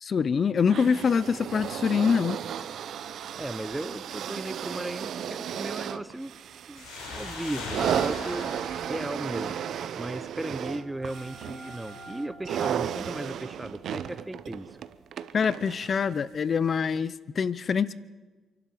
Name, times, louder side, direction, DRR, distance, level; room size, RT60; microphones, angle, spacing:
voice 1, 0.0-2.4 15.3-17.9, left 6 dB, 45° left, 19 dB, 0.6 m, -25 dB
sound 1, 0.7-16.1 17.0-17.1, right 9 dB, 65° right, 0.8 m, -34 dB
voice 2, 3.3-6.3 6.7-8.5 8.9-9.6 9.9-14.7, right 1 dB, 10° right, 15 dB, 0.9 m, -36 dB
sound 2, 6.8-10.1, left 3 dB, 90° left, 5.6 m, -40 dB
sound 3, 10.2-15.7, right 2 dB, 10° left, 5.0 m, -50 dB
28.0 x 12.0 x 7.8 m, 1.3 s
cardioid pair, 90°, 0 cm